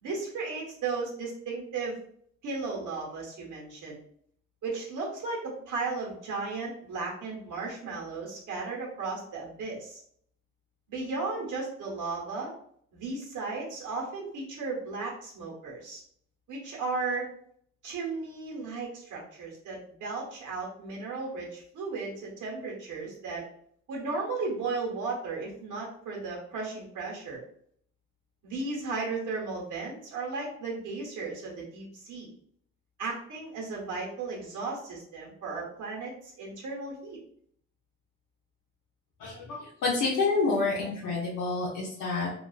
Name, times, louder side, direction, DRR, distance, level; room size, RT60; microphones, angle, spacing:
voice 1, 0.0-2.0 2.4-4.0 4.6-10.0 10.9-12.5 12.9-16.0 16.5-17.3 17.8-23.4 23.9-27.4 28.4-32.3 33.0-37.2, right 3 dB, 90° right, -2 dB, 0.9 m, -35 dB
voice 2, 39.2-42.3, left 3 dB, 80° left, -5 dB, 0.6 m, -28 dB
2.3 x 2.2 x 2.3 m, 0.66 s
cardioid pair, 115°, 30 cm